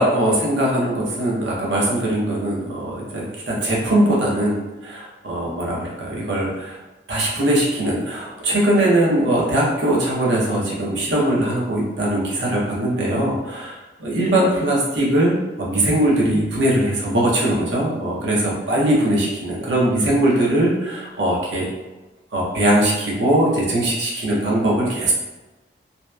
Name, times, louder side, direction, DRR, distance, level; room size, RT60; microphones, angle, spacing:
voice 1, 0.0-4.5 4.8-6.8 7.1-21.7 22.3-25.1, right 1 dB, 85° right, -4 dB, 0.7 m, -20 dB
2.7 x 2.0 x 2.2 m, 1.1 s
head